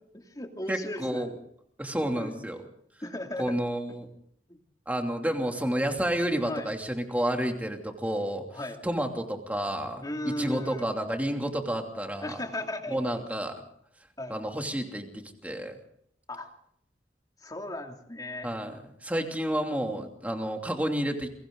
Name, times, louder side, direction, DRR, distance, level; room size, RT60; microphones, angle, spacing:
voice 1, 0.1-1.3 1.9-2.3 3.0-3.6 4.5-4.6 6.5-6.7 8.5-8.8 10.0-10.9 12.2-13.0 14.2-14.3 16.3-16.5 17.4-18.5, left 1 dB, 20° left, 3 dB, 2.8 m, -36 dB
voice 2, 0.7-1.4 1.8-2.6 3.4-4.1 4.9-12.4 12.9-13.5 14.3-15.8 18.4-21.3, right 1 dB, 10° right, 3 dB, 2.8 m, -30 dB
29.5 x 23.0 x 4.0 m, 0.68 s
head